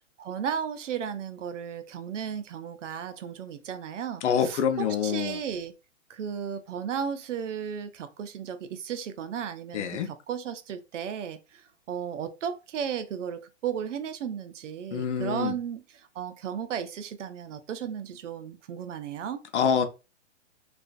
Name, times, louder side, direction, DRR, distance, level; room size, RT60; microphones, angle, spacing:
voice 1, 0.2-5.7 6.1-9.9 10.3-11.6 11.9-19.4, right 8 dB, 80° right, 0.6 m, -34 dB
voice 2, 4.2-5.4 9.7-10.1 14.9-15.6 19.5-19.8, left 7 dB, 70° left, 0.6 m, -26 dB
2.4 x 2.3 x 2.3 m
hypercardioid pair, 145°, 36 cm